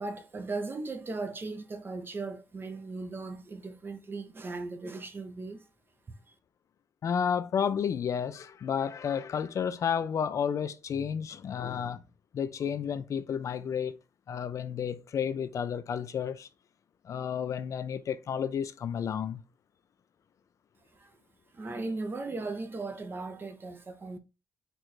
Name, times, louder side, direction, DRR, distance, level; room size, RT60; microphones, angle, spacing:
voice 1, 0.0-5.7 6.1-6.3 20.9-21.2 21.5-24.2, right 3 dB, 35° right, 0.8 m, -37 dB
voice 2, 7.0-12.0 12.3-14.0 14.3-16.5 17.0-19.4, left 7 dB, 55° left, 0.5 m, -31 dB
4.6 x 2.6 x 4.2 m
cardioid pair, 95°, 7 cm